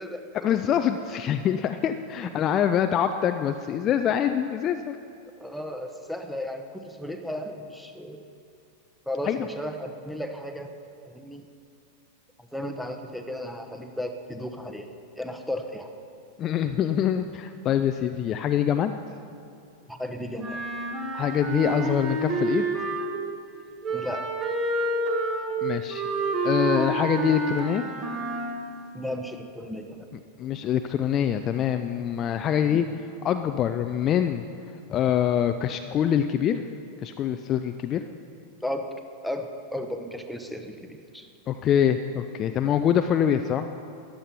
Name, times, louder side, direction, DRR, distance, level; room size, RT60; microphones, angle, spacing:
voice 1, 0.4-5.0 9.3-9.4 16.4-18.9 21.1-22.7 25.6-26.0 26.4-27.8 30.4-32.9 33.2-34.4 34.9-36.6 37.0-38.0 41.5-43.7, left 9 dB, 30° left, 8 dB, 0.4 m, -24 dB
voice 2, 5.4-8.2 9.1-10.7 11.1-11.4 12.4-14.9 15.2-15.9 19.9-20.6 23.9-24.3 28.9-30.1 32.5-32.8 38.6-38.9 39.2-41.3, left 1 dB, ahead, 4 dB, 1.0 m, -34 dB
Wind instrument woodwind instrument, 20.4-23.3 23.8-28.7, right 2 dB, 25° right, 1.5 m, -28 dB
14.0 x 10.0 x 5.7 m, 2.5 s
figure-of-eight pair, 90°, 0 cm